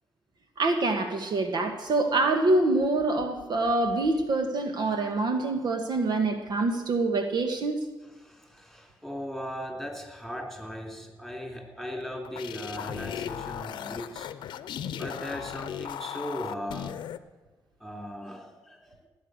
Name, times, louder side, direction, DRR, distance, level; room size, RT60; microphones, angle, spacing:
voice 1, 0.6-7.8, right 2 dB, 65° right, 6 dB, 1.5 m, -25 dB
voice 2, 8.0-14.3 14.9-17.0 17.8-18.9, equal, ahead, 2 dB, 3.8 m, -38 dB
sound 1, 12.0-17.2, left 10 dB, 80° left, 0.7 m, -37 dB
18.5 x 8.8 x 6.6 m, 1.2 s
cardioid pair, 80°, 8 cm